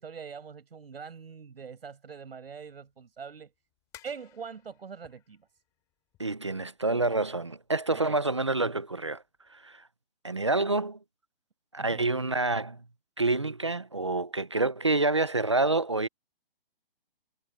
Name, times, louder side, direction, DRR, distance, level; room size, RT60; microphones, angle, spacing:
voice 1, 0.0-3.5 4.0-5.5 7.9-8.2 8.6-8.8 11.8-12.2, right 6 dB, 75° right, 6.9 m, -43 dB
sound 1, 2.9-7.7 8.1-8.6 8.9-9.1 9.5-9.6, left 15 dB, 10° left, 3.1 m, -57 dB
voice 2, 6.2-9.2 9.5-9.8 10.2-11.0 11.7-12.8 13.2-16.1, right 2 dB, 30° right, 0.4 m, -27 dB
hypercardioid pair, 180°, 30 cm